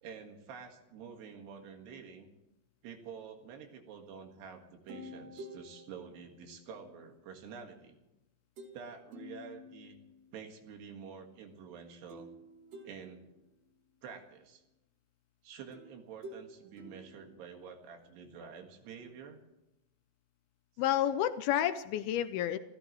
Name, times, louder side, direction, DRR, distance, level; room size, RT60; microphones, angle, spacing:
voice 1, 0.0-2.3 2.8-8.0 8.7-10.0 10.3-12.3 12.8-13.2 14.0-14.6 15.4-19.4, right 6 dB, 75° right, 4 dB, 3.8 m, -48 dB
sound 1, 4.9-7.2 8.6-8.8 9.1-10.4 12.1-13.8 15.7-18.0, equal, 50° right, 2.5 m, -51 dB
voice 2, 20.8-22.6, left 11 dB, 80° left, 11 dB, 2.3 m, -30 dB
29.0 x 15.0 x 3.1 m, 0.93 s
omnidirectional pair, 4.9 m